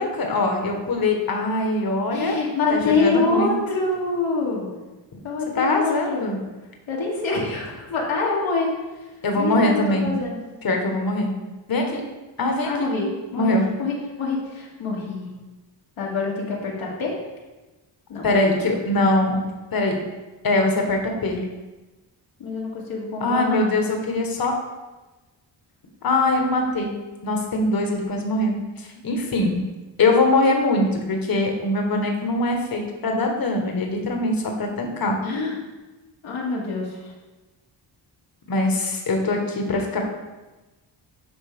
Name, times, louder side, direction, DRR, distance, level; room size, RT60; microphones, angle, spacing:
voice 1, 0.0-2.4 2.7-3.5 5.5-6.4 9.2-10.1 10.6-11.3 11.7-12.0 12.4-13.7 18.2-19.4 19.7-20.0 20.4-21.4 23.2-24.5 26.0-26.9 27.2-29.6 30.0-35.2 38.5-40.1, left 2 dB, 50° left, 2 dB, 1.4 m, -22 dB
voice 2, 2.1-4.7 5.2-6.3 6.9-8.7 9.4-10.4 12.6-13.5 13.8-15.3 16.0-17.1 18.1-18.3 22.4-23.7 35.2-35.6 36.2-37.1, left 3 dB, 80° left, -4 dB, 2.0 m, -25 dB
10.0 x 3.7 x 3.6 m, 1.1 s
cardioid pair, 65°, 46 cm